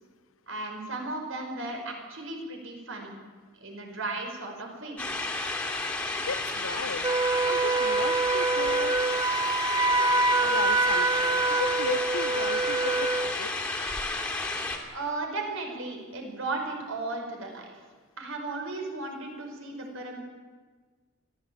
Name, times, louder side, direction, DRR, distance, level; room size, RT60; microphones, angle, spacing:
voice 1, 0.5-3.1 3.6-5.0 14.9-17.7 18.2-20.2, right 2 dB, 60° right, 2 dB, 5.3 m, -35 dB
sound 1, 5.0-14.8, left 2 dB, 5° left, 2.8 m, -32 dB
voice 2, 6.3-7.1 7.5-9.0 10.4-13.5, left 4 dB, 65° left, 15 dB, 0.8 m, -35 dB
Wind instrument woodwind instrument, 7.0-13.4, right 3 dB, 15° right, 0.6 m, -25 dB
24.0 x 15.5 x 8.8 m, 1.4 s
head